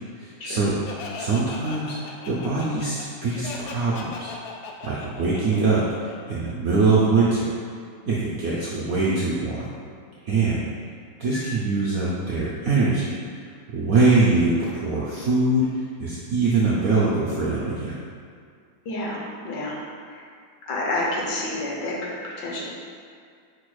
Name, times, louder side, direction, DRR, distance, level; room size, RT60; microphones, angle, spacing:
voice 1, 0.2-4.3 4.8-5.9 6.3-7.5 8.1-9.7 10.2-10.7 11.2-13.1 13.7-15.6 16.0-18.0, right 3 dB, 70° right, -7 dB, 0.8 m, -23 dB
Laughter, 0.9-6.5, left 4 dB, 85° left, 0.8 m, -38 dB
voice 2, 18.8-19.8 20.1-20.2 20.7-22.7, left 1 dB, 65° left, -4 dB, 1.3 m, -29 dB
4.9 x 2.3 x 4.6 m, 2.3 s
omnidirectional pair, 2.1 m